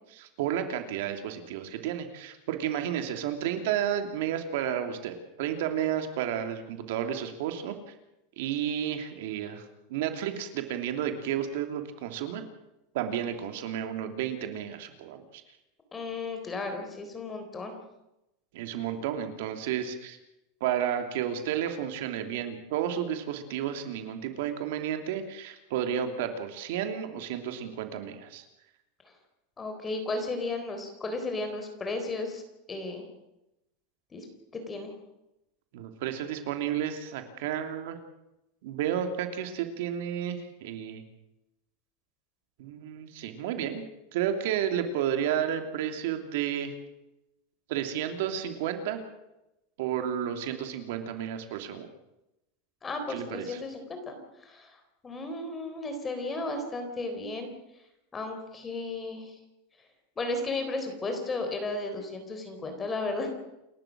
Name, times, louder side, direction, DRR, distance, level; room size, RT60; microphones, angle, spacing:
voice 1, 0.1-7.9 8.4-9.6 9.9-12.4 12.9-15.4 18.5-20.2 20.6-28.4 35.7-38.0 38.6-41.0 42.6-43.8 44.1-46.7 47.7-49.0 49.8-51.9 53.1-53.6, right 9 dB, 65° right, 6 dB, 3.0 m, -32 dB
voice 2, 15.9-17.7 29.6-32.4 32.7-33.0 34.1-34.3 34.5-34.9 52.8-54.1 54.4-54.7 55.0-57.5 58.1-59.3 60.2-63.4, left 2 dB, 15° left, 6 dB, 3.9 m, -34 dB
28.5 x 13.0 x 7.6 m, 0.91 s
supercardioid pair, 165°, 0 cm